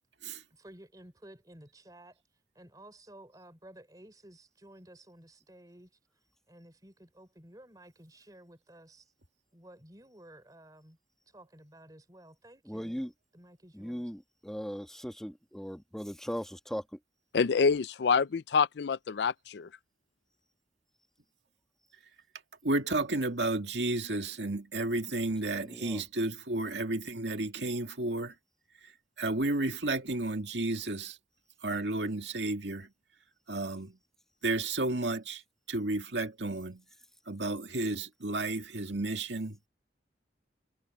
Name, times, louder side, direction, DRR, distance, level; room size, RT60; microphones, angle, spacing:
voice 1, 0.5-2.2 2.5-5.9 6.5-9.1 9.5-11.0 11.3-13.0 13.3-14.1, right 1 dB, 20° right, 3.4 m, -54 dB
voice 2, 12.6-13.1 13.7-17.0 25.5-26.0, equal, 5° left, 1.3 m, -39 dB
voice 3, 17.3-19.7, left 5 dB, 70° left, 0.4 m, -27 dB
voice 4, 22.6-28.3 29.2-31.2 31.6-32.9 33.5-34.0 34.4-35.4 35.7-36.8 37.3-39.6, right 2 dB, 75° right, 2.2 m, -32 dB
head